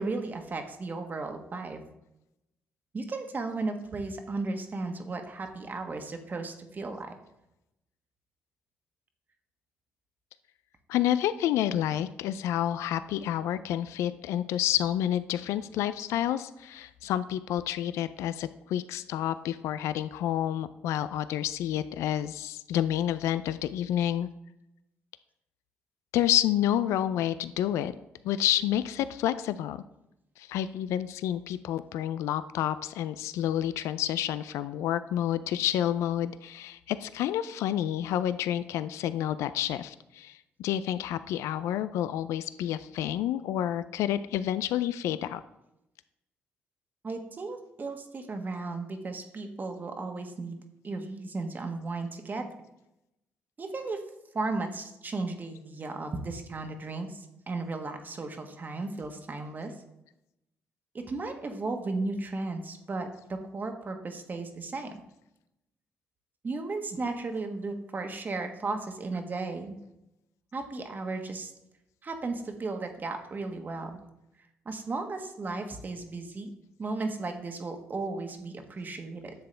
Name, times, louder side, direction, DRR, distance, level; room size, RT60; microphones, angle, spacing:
voice 1, 0.0-1.8 2.9-7.1 47.0-52.5 53.6-54.0 54.3-59.7 60.9-64.9 66.4-69.8 70.5-71.5 72.0-74.0 74.6-76.5 76.8-79.3, right 3 dB, 40° right, 5 dB, 1.3 m, -35 dB
voice 2, 10.9-24.3 26.1-27.9 28.2-29.8 30.4-45.4, left 11 dB, 80° left, 14 dB, 0.3 m, -29 dB
10.0 x 6.9 x 3.3 m, 0.87 s
supercardioid pair, 60°, 5 cm